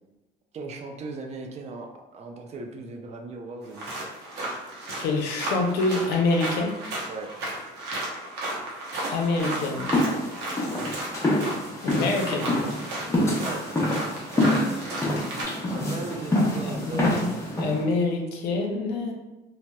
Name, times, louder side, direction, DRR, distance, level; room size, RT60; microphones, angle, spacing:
voice 1, 0.5-4.1 7.1-7.3 13.3-13.8 14.4-15.0 15.7-17.3, right 3 dB, 40° right, 3 dB, 0.4 m, -38 dB
sound 1, 3.6-15.4, right 1 dB, 90° right, 0.7 m, -34 dB
voice 2, 5.0-6.7 9.1-9.9 11.8-12.5 16.6-19.1, left 3 dB, 80° left, 1 dB, 0.5 m, -26 dB
sound 2, 9.4-17.8, left 1 dB, 15° left, 0.6 m, -26 dB
2.8 x 2.0 x 2.2 m, 1.1 s
cardioid pair, 110°, 17 cm